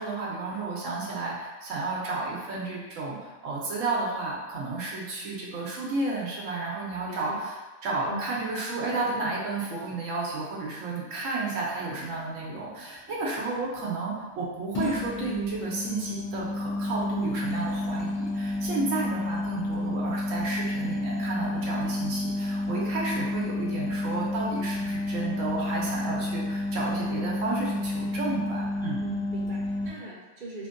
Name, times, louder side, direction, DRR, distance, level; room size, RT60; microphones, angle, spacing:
voice 1, 0.0-7.5 7.8-29.0, right 3 dB, 85° right, -4 dB, 1.1 m, -32 dB
voice 2, 7.1-7.4 8.1-8.3 29.0-30.7, right 1 dB, 50° right, -4 dB, 0.7 m, -40 dB
sound 1, 11.9-12.1 14.7-29.9, left 1 dB, 55° left, 0.4 m, -30 dB
2.9 x 2.6 x 2.5 m, 1.1 s
omnidirectional pair, 1.3 m